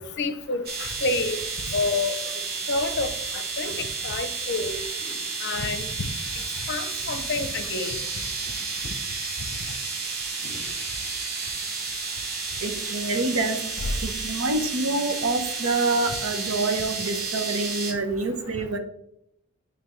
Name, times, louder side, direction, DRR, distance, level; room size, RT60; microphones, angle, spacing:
voice 1, 0.0-1.4 1.7-2.2 2.7-3.1 3.6-3.8 4.0-4.8 5.4-5.9 6.7-7.9 10.4-10.5 13.8-13.9, left 3 dB, 55° left, 10 dB, 0.6 m, -28 dB
sound 1, 0.7-17.9, right 4 dB, 45° right, 1.0 m, -31 dB
voice 2, 12.6-13.6 14.0-18.8, right 2 dB, 80° right, 7 dB, 0.9 m, -26 dB
9.7 x 3.4 x 3.1 m, 0.77 s
head